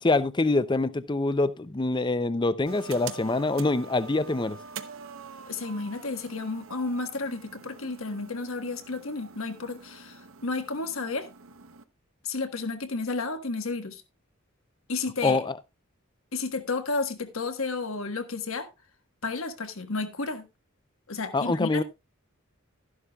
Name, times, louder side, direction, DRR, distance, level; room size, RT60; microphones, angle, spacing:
voice 1, 0.0-4.6 15.2-15.6 21.3-21.8, left 2 dB, 20° left, 0.5 m, -25 dB
sound 1, 2.7-11.8, right 5 dB, 65° right, 0.9 m, -45 dB
voice 2, 5.5-11.3 12.2-14.0 14.9-15.4 16.3-18.7 19.2-20.4 21.1-21.8, left 3 dB, 75° left, 1.5 m, -32 dB
13.0 x 11.0 x 2.4 m
head